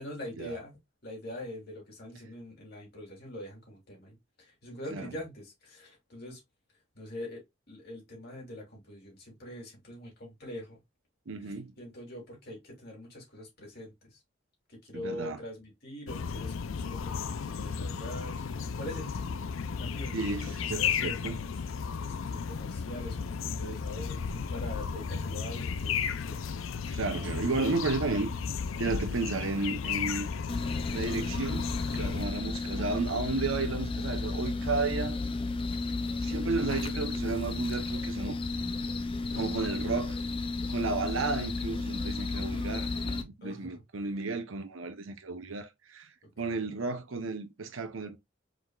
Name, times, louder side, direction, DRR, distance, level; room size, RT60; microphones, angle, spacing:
voice 1, 0.0-6.4 6.9-10.8 11.4-14.2 14.7-18.4 18.7-19.5 19.8-21.4 22.0-26.4 29.1-29.2 35.0-35.1 39.3-39.7 43.4-43.8 46.4-46.6, left 1 dB, 50° left, 2.7 m, -44 dB
voice 2, 11.3-11.7 14.9-15.4 20.1-21.4 26.9-28.3 28.8-30.3 30.9-35.2 36.2-38.4 39.3-40.2 40.7-46.1 46.4-48.2, right 3 dB, 85° right, 0.8 m, -33 dB
sound 1, 16.1-32.3, left 6 dB, 90° left, 0.5 m, -34 dB
sound 2, 30.5-43.2, left 3 dB, 25° left, 0.4 m, -33 dB
4.8 x 3.9 x 2.3 m
head